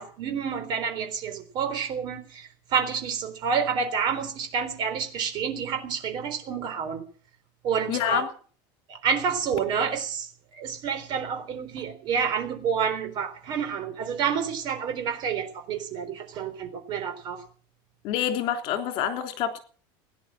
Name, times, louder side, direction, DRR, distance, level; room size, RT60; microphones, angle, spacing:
voice 1, 0.0-7.0 7.6-8.2 8.9-17.4, right 6 dB, 40° right, 8 dB, 3.8 m, -29 dB
voice 2, 7.9-8.3 18.0-19.6, left 10 dB, 45° left, 6 dB, 3.3 m, -27 dB
17.0 x 10.5 x 7.6 m, 0.42 s
supercardioid pair, 160°, 12 cm